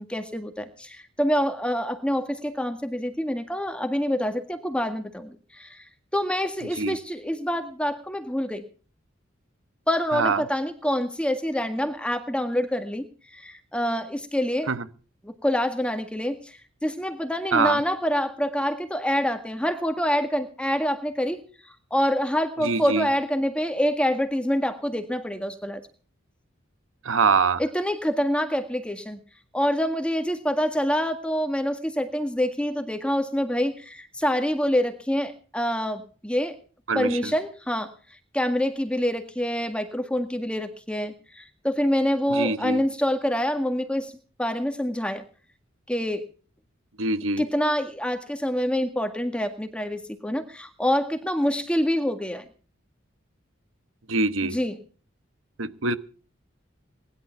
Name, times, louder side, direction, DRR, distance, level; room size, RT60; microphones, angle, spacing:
voice 1, 0.0-5.8 6.1-8.6 9.9-13.0 13.3-14.7 15.2-21.4 21.9-25.8 27.6-29.2 29.5-36.5 36.9-37.9 38.3-44.1 44.4-45.2 45.9-46.2 47.4-52.4 54.4-54.8, equal, 5° left, 7 dB, 1.8 m, -26 dB
voice 2, 10.1-10.4 14.7-14.8 17.5-17.8 22.6-23.1 27.0-27.6 36.9-37.3 42.3-42.8 47.0-47.4 54.1-54.6 55.6-56.0, right 4 dB, 90° right, 13 dB, 1.2 m, -24 dB
19.5 x 11.0 x 5.8 m, 0.40 s
head